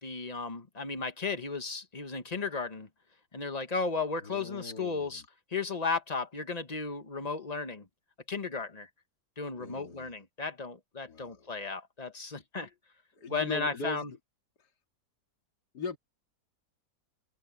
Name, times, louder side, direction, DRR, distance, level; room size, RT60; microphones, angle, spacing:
voice 1, 0.0-2.9 3.3-5.2 5.5-7.9 8.3-8.9 9.4-12.7 13.3-14.1, left 4 dB, 25° left, 1.3 m, -34 dB
voice 2, 4.2-5.2 9.6-10.1 11.1-11.5 13.1-14.2 14.6-14.7 15.7-16.0, left 3 dB, 75° left, 3.1 m, -40 dB
open air
omnidirectional pair, 1.8 m